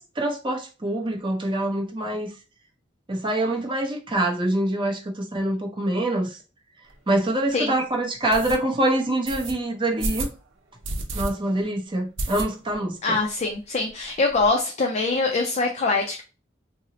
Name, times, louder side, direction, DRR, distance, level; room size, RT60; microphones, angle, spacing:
voice 1, 0.0-2.3 3.1-6.4 7.1-10.3 11.1-13.2, right 1 dB, 25° right, 0.6 m, -25 dB
sound 1, 6.9-7.0 7.5-7.6 8.3-8.6 9.3-9.5 10.0-10.4 10.8-11.3 11.6-11.7 12.2-12.8 13.2-13.3 13.5-13.6 13.9-14.5, right 2 dB, 80° right, 0.7 m, -30 dB
voice 2, 13.0-16.2, left 3 dB, 35° left, 0.4 m, -23 dB
2.8 x 2.0 x 3.8 m
head